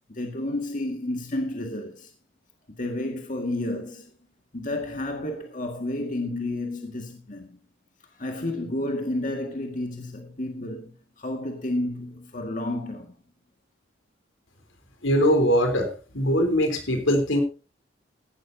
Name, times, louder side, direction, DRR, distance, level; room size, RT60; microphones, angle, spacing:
voice 1, 0.1-2.1 2.8-4.1 4.5-7.6 8.1-13.2, left 1 dB, 40° left, 1.8 m, -31 dB
voice 2, 15.0-17.4, equal, 80° left, 3.5 m, -22 dB
16.0 x 12.0 x 2.7 m
head